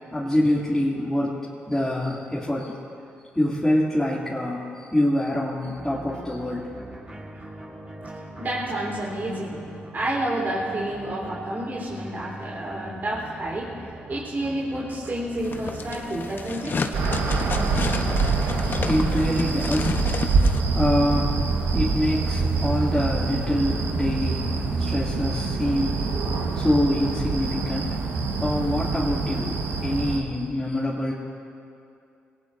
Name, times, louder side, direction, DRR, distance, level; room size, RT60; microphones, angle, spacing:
voice 1, 0.1-1.4 1.7-2.7 3.3-6.7 18.5-31.1, left 1 dB, 10° left, -8 dB, 2.9 m, -26 dB
sound 1, 5.6-18.8, right 1 dB, 25° right, 4.4 m, -41 dB
voice 2, 8.4-9.6 9.9-13.7 14.1-16.7, right 1 dB, 45° right, -5 dB, 4.2 m, -29 dB
sound 2, 15.4-20.6, left 4 dB, 50° left, 1.1 m, -31 dB
sound 3, 16.9-30.2, right 4 dB, 80° right, 1.6 m, -25 dB
23.0 x 18.0 x 2.8 m, 2.6 s
supercardioid pair, 55°, 5 cm